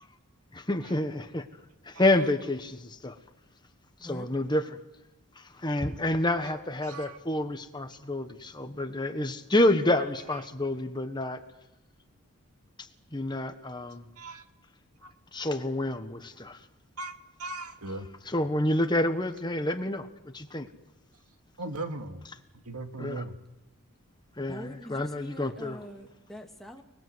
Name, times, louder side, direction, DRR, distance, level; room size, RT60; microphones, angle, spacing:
voice 1, 0.5-1.4 1.8-3.2 4.0-4.6 5.4-11.4 12.8-14.1 15.3-16.6 18.3-20.1 20.3-20.7 23.0-23.2 24.4-25.8, left 1 dB, 20° left, 8 dB, 1.3 m, -28 dB
voice 2, 6.8-7.2 14.2-14.4 15.0-15.1 17.0-17.1 17.4-18.1 21.6-22.2 22.7-23.4, right 2 dB, 85° right, 5 dB, 2.2 m, -38 dB
voice 3, 24.4-26.8, left 1 dB, ahead, 2 dB, 2.1 m, -44 dB
29.5 x 21.0 x 8.0 m, 0.98 s
head